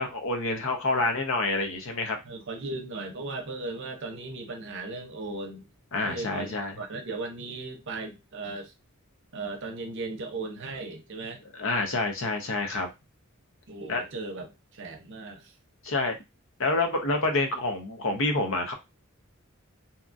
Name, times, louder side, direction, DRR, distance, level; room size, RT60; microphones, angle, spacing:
voice 1, 0.0-2.2 5.9-6.7 11.5-12.9 13.9-14.0 15.8-16.2 16.6-18.7, left 2 dB, 70° left, 0.7 m, -27 dB
voice 2, 2.2-5.7 6.0-8.7 9.3-11.4 13.7-15.5, right 3 dB, 60° right, 0.7 m, -37 dB
2.8 x 2.3 x 2.5 m
head